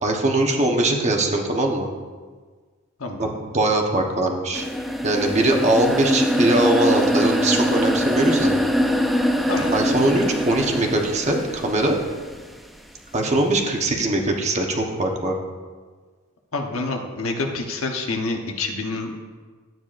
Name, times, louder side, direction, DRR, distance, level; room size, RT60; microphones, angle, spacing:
voice 1, 0.0-1.9 3.2-4.7 5.0-8.6 9.7-12.0 13.1-15.4, right 2 dB, 30° right, 1 dB, 1.1 m, -21 dB
voice 2, 3.0-3.3 9.5-9.7 16.5-19.1, left 3 dB, 70° left, 2 dB, 1.1 m, -27 dB
sound 1, 4.5-12.5, equal, ahead, 0.4 m, -23 dB
12.0 x 9.1 x 2.6 m, 1.5 s
head